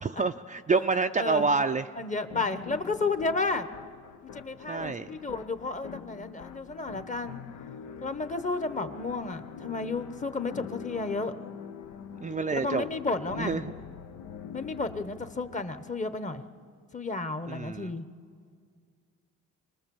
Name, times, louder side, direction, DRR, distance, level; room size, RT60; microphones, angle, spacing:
voice 1, 0.0-1.9 4.7-5.1 12.2-12.9 13.4-13.7 17.5-17.9, right 4 dB, 25° right, 7 dB, 0.5 m, -27 dB
voice 2, 1.2-1.5 2.0-3.7 4.2-7.4 8.0-11.3 12.5-13.5 14.5-16.4 16.9-18.1, left 3 dB, 25° left, 10 dB, 1.1 m, -32 dB
sound 1, 2.3-16.0, left 8 dB, 75° left, 0.9 m, -44 dB
26.0 x 19.5 x 7.1 m, 2.1 s
cardioid pair, 90°, 30 cm